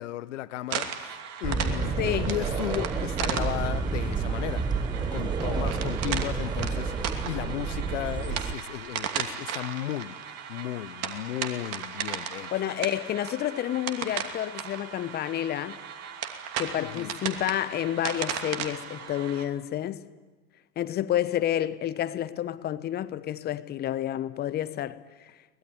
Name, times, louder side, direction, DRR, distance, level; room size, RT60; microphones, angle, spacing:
voice 1, 0.0-2.0 2.3-4.6 4.9-10.2 10.5-12.5 16.8-17.1, left 14 dB, 50° left, 1.2 m, -35 dB
sound 1, 0.7-19.5, right 8 dB, 30° right, 2.7 m, -36 dB
sound 2, 1.4-8.5, right 5 dB, 10° right, 1.0 m, -30 dB
voice 2, 2.0-2.3 12.5-15.8 16.6-20.0 20.8-25.0, left 12 dB, 20° left, 1.0 m, -29 dB
24.0 x 20.0 x 9.9 m
figure-of-eight pair, 100°, 47 cm